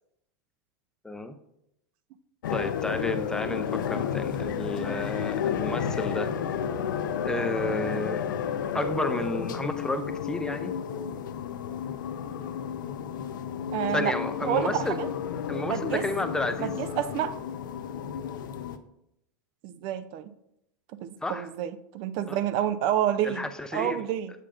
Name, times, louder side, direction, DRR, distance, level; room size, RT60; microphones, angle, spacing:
voice 1, 1.0-1.4 2.5-6.3 7.2-8.2 8.7-10.7 13.9-15.0 15.5-16.7 21.2-21.5 22.3-22.4 23.2-24.0, left 1 dB, 5° left, 8 dB, 0.5 m, -31 dB
sound 1, 2.4-18.8, left 8 dB, 85° left, 0.5 m, -32 dB
voice 2, 13.7-14.1 14.4-15.1 15.7-16.0 16.6-17.3 19.6-20.3 20.9-23.5 23.7-24.3, right 10 dB, 50° right, 13 dB, 0.5 m, -29 dB
7.3 x 6.6 x 2.5 m, 0.79 s
hypercardioid pair, 110°, 10 cm